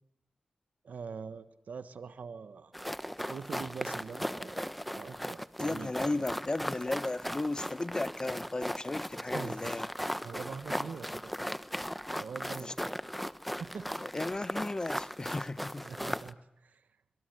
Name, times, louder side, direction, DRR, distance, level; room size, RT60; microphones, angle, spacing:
voice 1, 0.8-2.7 3.3-4.6 4.9-6.2 9.3-9.7 10.2-11.5 12.2-12.8 13.6-13.9 15.8-16.4 16.6-16.9, right 5 dB, 75° right, 1.3 m, -43 dB
sound 1, 2.7-16.3, equal, ahead, 1.0 m, -37 dB
voice 2, 5.6-9.9 12.6-12.7 14.0-15.9, left 2 dB, 30° left, 1.0 m, -35 dB
26.0 x 22.0 x 9.3 m
cardioid pair, 55°, 3 cm